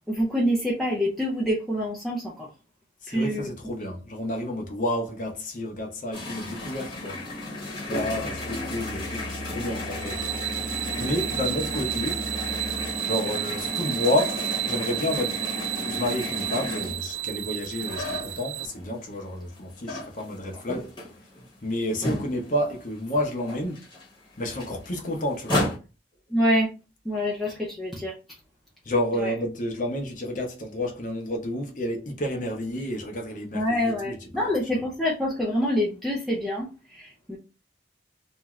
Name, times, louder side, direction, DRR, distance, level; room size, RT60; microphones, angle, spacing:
voice 1, 0.1-2.5 3.1-3.5 26.3-26.7 27.0-28.1 29.2-29.3 33.5-37.4, equal, ahead, 0.5 m, -26 dB
voice 2, 3.0-7.2 7.9-10.2 11.0-12.2 13.0-15.4 15.8-20.9 21.6-23.8 24.4-25.8 28.8-34.5, left 1 dB, 45° left, 0.7 m, -30 dB
sound 1, 6.1-18.9 19.3-22.8 23.1-23.2 23.4-25.8, left 1 dB, 25° left, 1.0 m, -33 dB
Musical instrument, 7.9-13.0, right 1 dB, 75° left, 0.8 m, -40 dB
sound 2, 10.0-18.7, right 15 dB, 80° right, 0.3 m, -32 dB
2.6 x 2.4 x 3.0 m
head